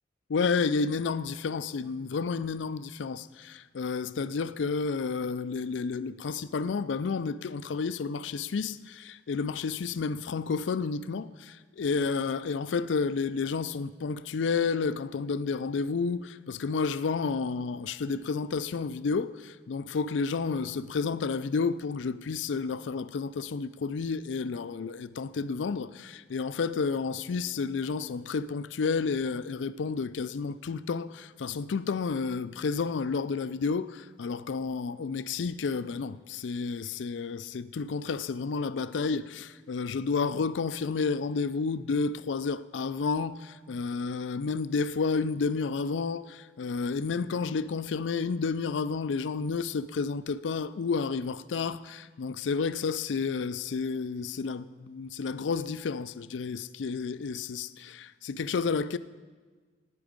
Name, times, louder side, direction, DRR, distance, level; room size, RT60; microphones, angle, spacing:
voice 1, 0.3-59.0, left 4 dB, 85° left, 0.4 m, -31 dB
15.5 x 9.8 x 5.2 m
head